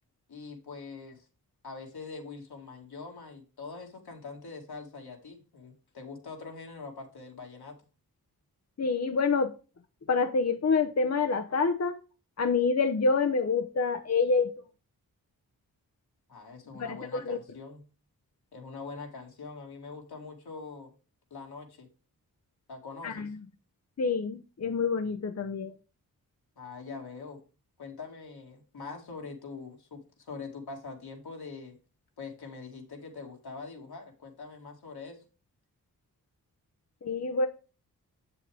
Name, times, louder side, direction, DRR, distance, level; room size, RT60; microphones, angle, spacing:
voice 1, 0.3-1.3 1.6-7.8 16.3-17.8 18.5-20.9 21.3-21.9 22.7-23.3 26.6-27.4 27.8-31.8 32.2-35.2, left 4 dB, 75° left, 2.3 m, -43 dB
voice 2, 8.8-9.5 10.1-12.0 12.4-14.5 16.8-17.4 23.0-23.4 24.0-25.7 37.0-37.5, left 4 dB, 40° left, 0.9 m, -27 dB
7.1 x 7.0 x 3.4 m
supercardioid pair, 40°, 38 cm